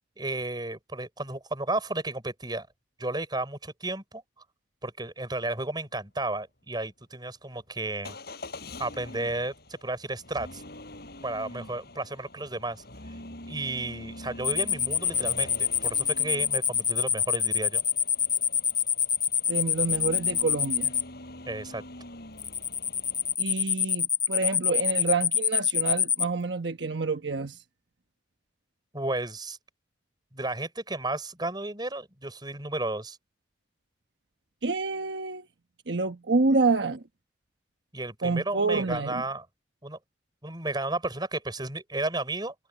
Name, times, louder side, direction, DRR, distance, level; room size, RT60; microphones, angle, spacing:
voice 1, 0.2-2.7 3.0-4.2 4.8-8.2 8.8-10.6 11.2-12.8 13.5-17.8 21.5-21.8 28.9-29.6 30.3-33.2 37.9-39.4 39.8-40.0 40.4-42.5, right 2 dB, 25° right, 5.9 m, -33 dB
Motor vehicle (road) / Engine starting / Accelerating revving vroom, 8.0-23.4, left 1 dB, 55° left, 8.0 m, -45 dB
sound 1, 14.4-21.0 22.4-26.2, left 8 dB, 20° left, 0.7 m, -25 dB
voice 2, 19.5-20.9 23.4-27.6 34.6-35.5 35.9-37.0 38.2-39.2, right 3 dB, 65° right, 1.1 m, -28 dB
head